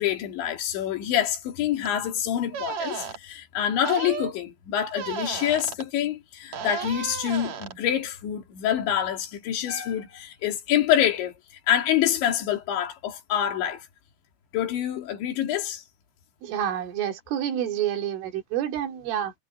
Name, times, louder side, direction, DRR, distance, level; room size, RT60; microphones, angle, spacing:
voice 1, 0.0-11.3 11.7-13.8 14.5-15.8, left 10 dB, 65° left, 5.1 m, -26 dB
sound 1, 1.8-1.9 2.5-3.2 3.8-4.3 4.9-5.9 6.5-7.8, right 7 dB, 55° right, 2.2 m, -33 dB
voice 2, 16.4-19.3, right 10 dB, 75° right, 5.2 m, -28 dB
omnidirectional pair, 5.8 m